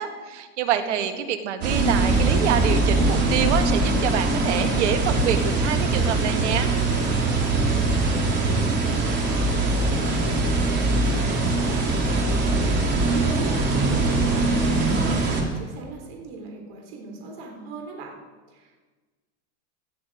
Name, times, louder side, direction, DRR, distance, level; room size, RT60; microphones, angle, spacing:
voice 1, 0.0-6.7, right 9 dB, 80° right, 8 dB, 1.7 m, -26 dB
voice 2, 0.8-1.1 7.5-9.4 10.0-18.2 18.5-18.8, right 2 dB, 55° right, 1 dB, 3.8 m, -38 dB
sound 1, 1.6-15.4, right 2 dB, 30° right, 3.0 m, -22 dB
18.5 x 13.0 x 4.9 m, 1.3 s
supercardioid pair, 160°, 34 cm